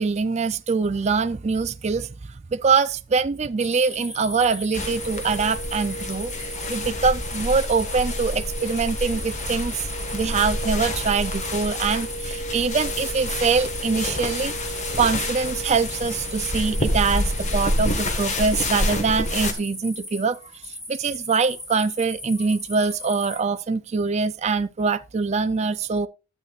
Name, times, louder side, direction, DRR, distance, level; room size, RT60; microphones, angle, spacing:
voice 1, 0.0-2.1 2.5-6.3 6.7-9.7 10.1-14.5 15.0-20.4 20.9-26.1, right 5 dB, 35° right, 0.4 m, -23 dB
sound 1, 3.6-23.4, left 1 dB, 20° left, 4.4 m, -38 dB
sound 2, 4.7-19.5, left 1 dB, 35° left, 1.5 m, -28 dB
12.0 x 8.3 x 2.4 m
head